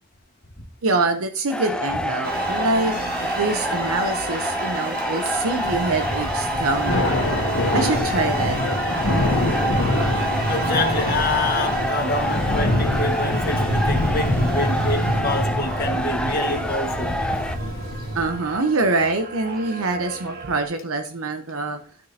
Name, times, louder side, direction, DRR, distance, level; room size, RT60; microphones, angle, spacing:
voice 1, 0.8-3.0 3.3-7.3 7.7-8.6 18.1-21.8, right 3 dB, 85° right, 0.8 m, -24 dB
sound 1, 1.5-17.6, equal, 5° left, 0.4 m, -27 dB
sound 2, 2.2-20.6, right 3 dB, 45° right, 1.6 m, -33 dB
Thunder / Rain, 5.6-18.5, left 1 dB, 75° left, 1.7 m, -25 dB
voice 2, 10.5-17.3, left 2 dB, 45° left, 1.5 m, -27 dB
13.0 x 6.4 x 2.8 m
head